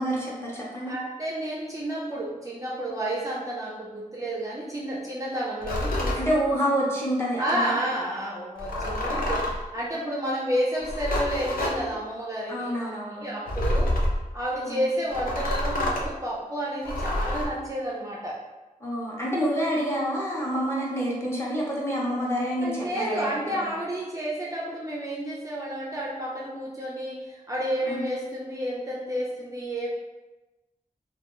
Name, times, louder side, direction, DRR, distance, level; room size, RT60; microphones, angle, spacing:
voice 1, 0.0-0.9 6.1-7.7 12.5-13.3 14.6-14.8 18.8-23.3 27.9-28.0, equal, 15° left, -5 dB, 0.7 m, -27 dB
voice 2, 0.8-6.2 7.4-13.9 14.3-18.4 22.6-29.9, right 1 dB, 20° right, -5 dB, 0.4 m, -30 dB
sound 1, 5.6-6.2 8.6-9.6 10.8-11.8 13.5-14.2 15.1-16.1 16.8-17.5, left 1 dB, 75° left, 0.5 m, -27 dB
2.2 x 2.2 x 2.9 m, 1.1 s
wide cardioid pair, 90°, 15 cm